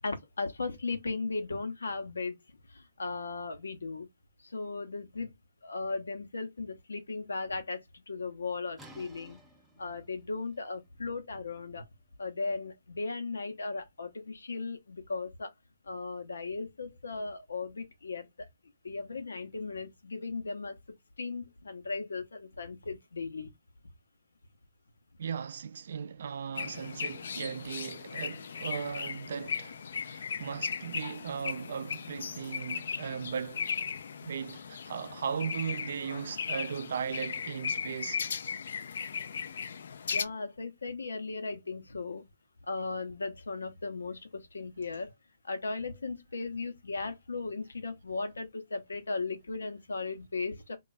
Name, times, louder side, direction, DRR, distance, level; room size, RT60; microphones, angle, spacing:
voice 1, 0.0-2.4 2.7-4.1 4.4-5.3 5.6-9.4 9.8-11.8 12.2-15.5 15.9-18.5 18.8-20.8 21.2-23.5 40.1-42.2 42.7-45.1 45.4-50.8, left 3 dB, 90° left, 0.8 m, -37 dB
sound 1, 8.8-14.4, right 1 dB, 10° right, 0.6 m, -58 dB
voice 2, 25.2-33.7 34.2-38.2, right 7 dB, 65° right, 0.4 m, -37 dB
sound 2, 26.6-40.3, left 6 dB, 70° left, 0.3 m, -37 dB
2.4 x 2.2 x 3.9 m
hypercardioid pair, 145°, 0 cm